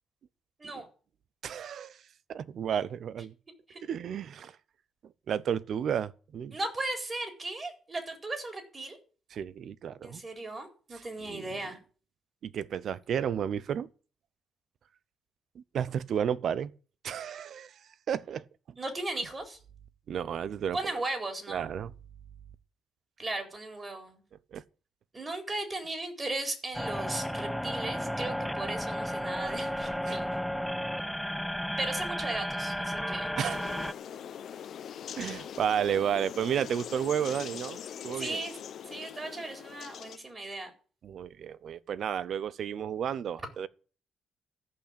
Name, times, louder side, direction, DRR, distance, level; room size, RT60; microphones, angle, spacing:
voice 1, 1.4-2.0 2.3-3.3 3.8-4.5 5.3-6.6 9.3-10.2 10.9-11.0 11.3-11.4 12.4-13.9 15.6-16.7 17.0-17.7 18.1-18.4 20.1-21.0 21.5-21.9 24.5-24.6 30.1-30.2 33.4-33.6 35.2-38.4 41.0-43.7, right 8 dB, 65° right, 0.7 m, -32 dB
voice 2, 6.5-9.0 10.0-11.8 18.8-19.6 20.7-21.6 23.2-24.2 25.1-30.3 31.8-33.3 38.1-38.6 38.9-40.7, right 2 dB, 25° right, 4.2 m, -36 dB
sound 1, 26.7-33.9, equal, ahead, 0.5 m, -33 dB
sound 2, 33.5-40.2, left 9 dB, 65° left, 0.9 m, -42 dB
14.0 x 5.9 x 8.6 m
cardioid pair, 90°, 0 cm